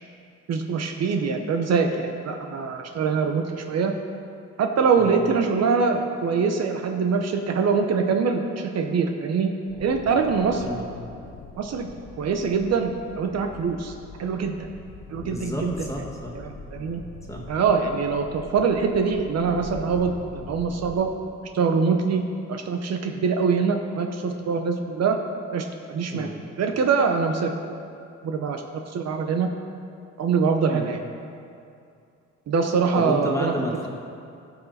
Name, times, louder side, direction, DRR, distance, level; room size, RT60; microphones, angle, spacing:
voice 1, 0.5-3.9 4.6-9.5 9.8-10.6 11.6-11.9 12.2-13.9 14.2-14.6 15.1-15.7 16.3-17.0 17.5-21.1 21.5-22.2 22.5-25.2 25.5-26.3 26.6-27.5 28.2-28.6 28.9-29.5 30.2-31.0 32.5-33.5, right 5 dB, 60° right, 4 dB, 0.8 m, -24 dB
sound 1, 9.7-20.9, left 3 dB, 70° left, 1.4 m, -42 dB
voice 2, 15.2-16.3 17.3-17.4 26.1-26.3 30.7-30.9 32.9-33.9, equal, 10° left, -2 dB, 1.8 m, -31 dB
15.0 x 5.7 x 4.2 m, 2.5 s
cardioid pair, 90°, 30 cm